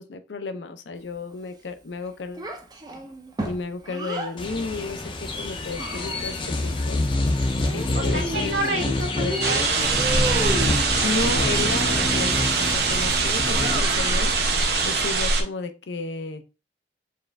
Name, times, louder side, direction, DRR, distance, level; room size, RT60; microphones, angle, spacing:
voice 1, 0.0-2.5 3.4-6.4 6.6-7.0 7.7-8.8 9.2-9.4 11.0-14.3 14.8-16.4, left 3 dB, 90° left, 9 dB, 0.5 m, -32 dB
Child speech kid speaking, 2.4-4.4 5.3-6.5 7.6-8.8 9.2-10.9 13.4-14.3, right 1 dB, 20° right, 0.5 m, -33 dB
sound 1, 4.4-15.1, left 2 dB, 30° left, 0.5 m, -27 dB
voice 2, 7.9-11.2, right 2 dB, 90° right, -2 dB, 1.6 m, -31 dB
sound 2, 9.4-15.4, right 4 dB, 65° right, 0.8 m, -23 dB
4.3 x 2.4 x 3.3 m, 0.30 s
head